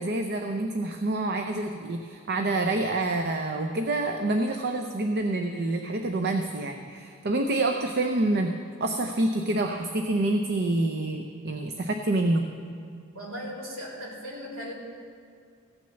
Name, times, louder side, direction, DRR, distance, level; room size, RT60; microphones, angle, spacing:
voice 1, 0.0-8.5 8.8-12.4, right 2 dB, 50° right, 5 dB, 0.6 m, -27 dB
voice 2, 13.1-14.7, equal, 70° right, -4 dB, 3.2 m, -37 dB
15.5 x 6.3 x 6.9 m, 2.3 s
head